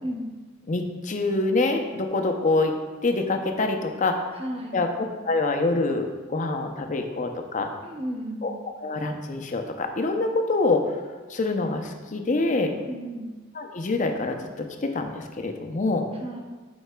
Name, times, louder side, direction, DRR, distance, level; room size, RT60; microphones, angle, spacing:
voice 1, 0.0-0.3 4.3-4.8 7.8-8.6 12.7-13.3 16.1-16.4, equal, 30° right, 1 dB, 0.8 m, -34 dB
voice 2, 0.7-2.7 3.0-4.2 4.7-4.9 5.2-7.7 8.4-8.5 8.8-11.0 11.3-12.7 13.6-16.1, left 3 dB, 40° left, 5 dB, 0.5 m, -25 dB
7.9 x 5.4 x 2.2 m, 1.3 s
head